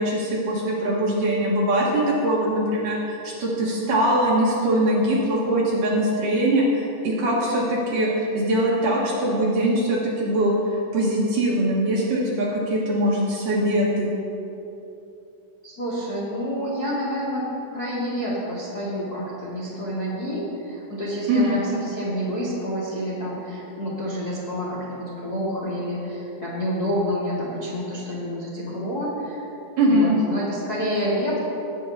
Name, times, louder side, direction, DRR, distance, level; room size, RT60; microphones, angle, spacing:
voice 1, 0.0-3.0 3.2-10.6 10.9-14.1 21.3-21.6 29.8-30.2, right 1 dB, 60° right, -5 dB, 2.4 m, -22 dB
voice 2, 15.6-17.5 17.7-29.4 29.8-31.4, equal, 80° left, -7 dB, 0.8 m, -28 dB
18.5 x 9.7 x 2.8 m, 2.9 s
omnidirectional pair, 5.5 m